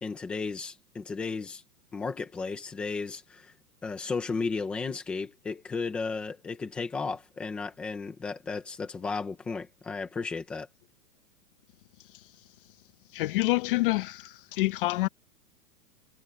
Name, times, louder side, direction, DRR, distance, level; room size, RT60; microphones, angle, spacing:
voice 1, 0.0-1.6 1.9-3.5 3.8-10.7, left 4 dB, 5° left, 0.4 m, -34 dB
voice 2, 13.1-14.2 14.6-15.1, left 20 dB, 35° left, 0.8 m, -26 dB
hypercardioid pair, 155°, 48 cm